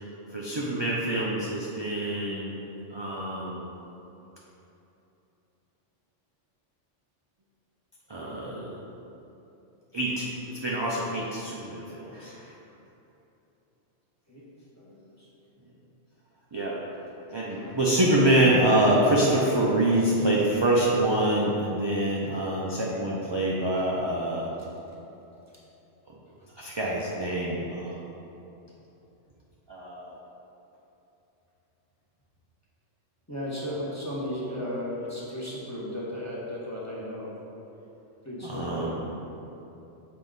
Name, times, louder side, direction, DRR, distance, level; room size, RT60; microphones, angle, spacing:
voice 1, 0.3-2.6 2.9-3.7 8.1-8.7 9.9-12.5 16.5-16.8 17.3-24.5 26.6-28.0 29.7-30.2 38.4-39.0, right 1 dB, 30° right, -5 dB, 0.5 m, -26 dB
voice 2, 14.8-15.3 26.4-26.5 33.3-37.5 38.2-39.1, left 1 dB, 15° left, -7 dB, 1.2 m, -35 dB
7.1 x 4.7 x 3.9 m, 2.9 s
omnidirectional pair, 1.2 m